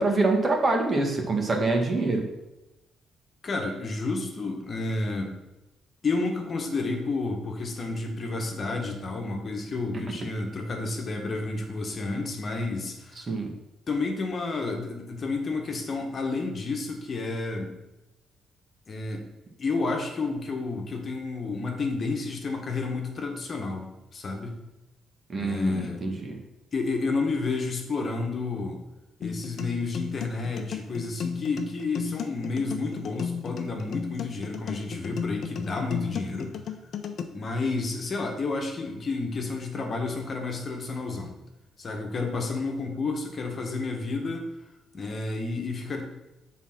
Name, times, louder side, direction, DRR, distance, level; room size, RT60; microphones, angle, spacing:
voice 1, 0.0-2.2 13.3-13.5 25.3-26.4, right 2 dB, 35° right, 2 dB, 1.6 m, -25 dB
voice 2, 3.4-5.3 6.0-13.3 13.9-17.7 18.9-19.3 19.6-23.8 24.1-24.6 25.4-26.0 26.7-28.8 29.2-36.6 37.3-41.3 41.8-44.5 44.9-46.0, left 3 dB, 45° left, 2 dB, 1.4 m, -30 dB
sound 1, 29.2-37.2, left 7 dB, 60° left, 0.7 m, -34 dB
7.3 x 4.2 x 5.9 m, 0.99 s
cardioid pair, 90°, 0 cm